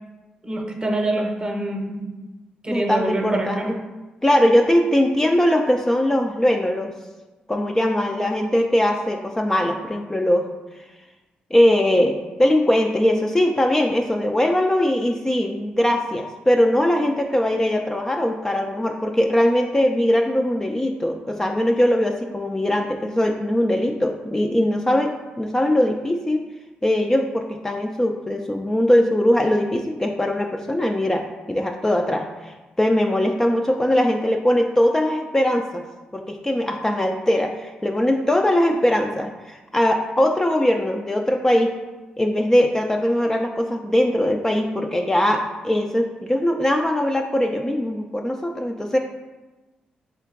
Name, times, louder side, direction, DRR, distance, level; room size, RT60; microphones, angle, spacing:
voice 1, 0.4-2.1 2.6-3.7, right 2 dB, 30° right, 3 dB, 0.8 m, -25 dB
voice 2, 2.7-3.8 4.2-6.9 7.5-10.5 11.5-26.5 26.8-35.8 36.1-41.7 42.2-49.0, left 1 dB, 15° left, 2 dB, 0.4 m, -21 dB
3.7 x 3.4 x 3.7 m, 1.1 s
cardioid pair, 65°, 3 cm